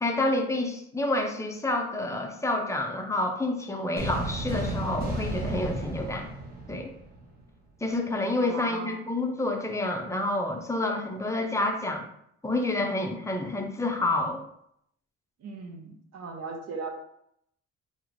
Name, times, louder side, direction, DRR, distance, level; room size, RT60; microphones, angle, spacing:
voice 1, 0.0-6.3 6.7-6.9 7.8-12.1 12.4-14.4, left 2 dB, 10° left, 3 dB, 0.5 m, -28 dB
sound 1, 4.0-7.4, right 2 dB, 30° right, 0.8 m, -33 dB
voice 2, 8.4-9.0 15.4-16.9, right 4 dB, 60° right, 3 dB, 0.7 m, -38 dB
3.1 x 2.0 x 3.7 m, 0.73 s
cardioid pair, 90°, 30 cm